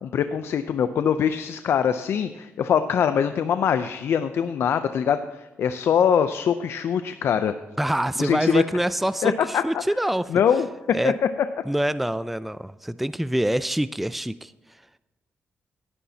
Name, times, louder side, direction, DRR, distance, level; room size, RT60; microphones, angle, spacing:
voice 1, 0.0-5.2 5.6-7.5 8.2-8.6 9.2-9.8 10.3-11.1, left 8 dB, 75° left, 10 dB, 0.5 m, -23 dB
voice 2, 7.8-10.3 10.9-11.1 11.7-14.5, right 1 dB, 5° right, 15 dB, 0.3 m, -25 dB
17.5 x 9.9 x 2.8 m, 1.1 s
cardioid pair, 75°, 4 cm